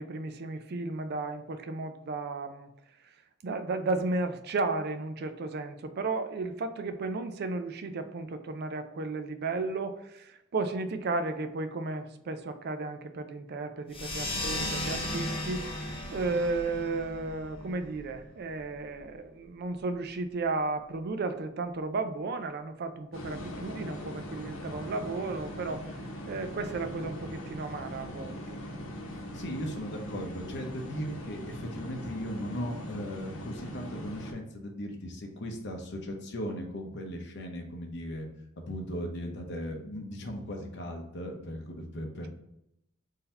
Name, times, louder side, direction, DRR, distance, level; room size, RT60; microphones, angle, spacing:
voice 1, 0.0-2.7 3.4-25.9 26.3-28.6, right 3 dB, 50° right, 8 dB, 0.4 m, -34 dB
sound 1, 13.9-19.0, left 1 dB, 30° left, 0.9 m, -36 dB
sound 2, 23.1-34.3, equal, 90° left, 0.9 m, -41 dB
voice 2, 29.3-38.3 38.6-42.3, equal, 60° left, 2 dB, 0.8 m, -37 dB
3.9 x 2.7 x 4.3 m, 0.83 s
head